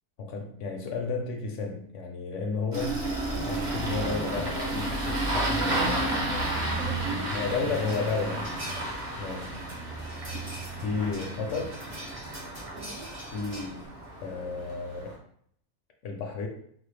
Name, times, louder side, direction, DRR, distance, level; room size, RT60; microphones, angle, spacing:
voice 1, 0.2-3.1 3.4-6.0 7.3-8.5 9.2-9.6 10.8-11.8 13.3-15.2 16.0-16.5, left 4 dB, 65° left, 2 dB, 0.8 m, -32 dB
Engine starting, 2.7-15.1, right 1 dB, 40° right, 0.9 m, -32 dB
voice 2, 5.6-7.6 12.8-13.1, right 4 dB, 75° right, 3 dB, 1.0 m, -40 dB
sound 1, 7.7-13.9, right 1 dB, 55° right, 1.8 m, -44 dB
4.0 x 2.1 x 3.2 m, 0.65 s
omnidirectional pair, 1.5 m